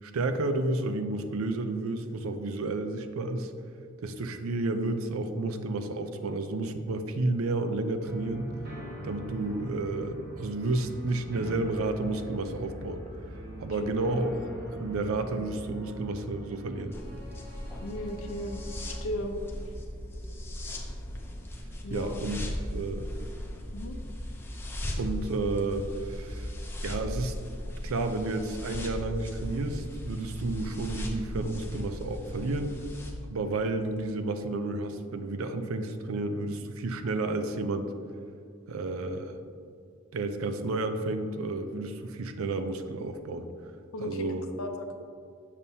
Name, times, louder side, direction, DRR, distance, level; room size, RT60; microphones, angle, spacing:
voice 1, 0.0-3.5 4.0-8.5 9.0-13.0 13.6-14.3 14.7-17.0 21.9-22.4 22.7-23.1 25.0-26.5 26.8-27.3 27.8-32.7 33.3-37.9 38.7-39.3 40.1-43.5 44.0-44.4, right 2 dB, 90° right, 8 dB, 0.5 m, -31 dB
sound 1, 8.0-19.0, right 1 dB, 50° right, 1.1 m, -42 dB
sound 2, 16.9-33.1, left 1 dB, 10° left, 0.6 m, -37 dB
voice 2, 17.8-19.4 21.8-22.2 23.7-24.0 43.9-44.2 44.6-44.9, left 1 dB, 80° left, 5 dB, 0.6 m, -36 dB
7.2 x 6.7 x 2.7 m, 2.4 s
head